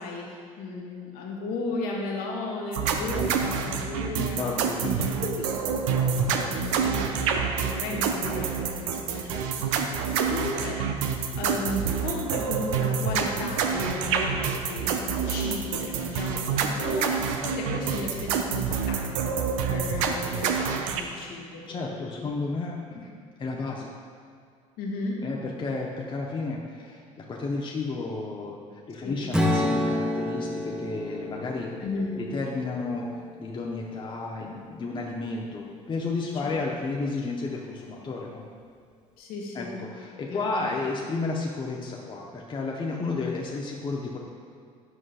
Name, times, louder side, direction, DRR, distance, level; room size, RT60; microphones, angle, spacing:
voice 1, 0.0-4.6 5.1-9.3 10.1-19.4 19.7-22.3 24.8-25.3 29.0-29.2 31.8-32.2 36.4-36.6 39.2-39.8 40.2-40.6, left 3 dB, 60° left, -2 dB, 1.3 m, -35 dB
sound 1, 2.7-21.0, right 6 dB, 65° right, 0.5 m, -27 dB
voice 2, 4.2-5.0 9.3-9.4 21.7-23.1 23.4-23.9 25.2-28.6 28.9-31.7 32.2-33.1 33.4-38.4 39.5-44.2, left 3 dB, 30° left, -1 dB, 0.7 m, -32 dB
Strum, 29.3-33.5, left 1 dB, 5° right, 0.8 m, -29 dB
9.5 x 6.0 x 2.4 m, 2.3 s
figure-of-eight pair, 55°, 18 cm